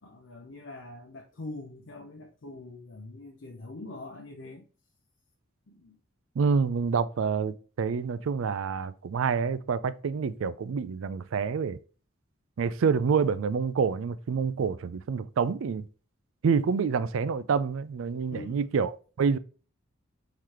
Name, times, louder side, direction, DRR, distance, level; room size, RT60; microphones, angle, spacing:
voice 1, 0.0-4.6 5.7-6.0 18.3-18.7, left 2 dB, 65° left, 0.6 m, -43 dB
voice 2, 6.4-11.8 12.6-15.9 16.4-18.9 19.2-19.4, right 5 dB, 75° right, 0.4 m, -27 dB
3.9 x 3.2 x 4.2 m
head